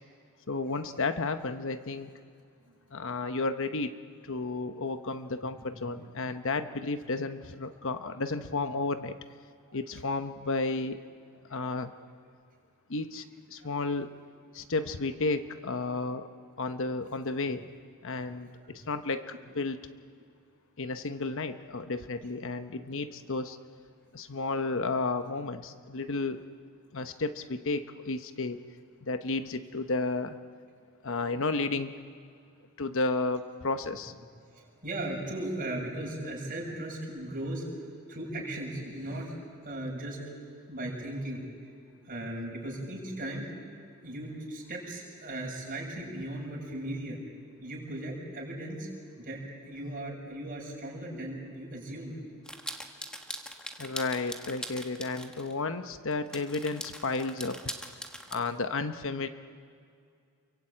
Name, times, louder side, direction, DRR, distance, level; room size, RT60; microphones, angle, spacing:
voice 1, 0.5-2.1 2.9-3.9 4.3-9.2 9.7-11.0 11.5-11.9 12.9-14.1 14.5-16.3 16.6-17.6 18.0-19.3 19.5-19.8 20.8-23.6 24.1-26.4 26.9-28.6 29.0-30.4 31.0-31.9 32.8-34.1 53.8-57.6 58.3-59.3, left 3 dB, 60° left, 9 dB, 1.0 m, -32 dB
voice 2, 5.3-5.7 6.0-6.2 9.7-9.8 10.4-10.5 11.5-11.6 13.6-13.7 34.5-37.7 38.1-39.3 39.6-40.2 40.7-41.4 42.1-43.5 44.0-47.2 47.6-48.9 49.2-52.1, right 1 dB, 40° right, -1 dB, 7.0 m, -37 dB
sound 1, 52.5-55.5 56.1-58.4, equal, 5° left, 1.4 m, -41 dB
29.0 x 23.5 x 8.7 m, 2.3 s
head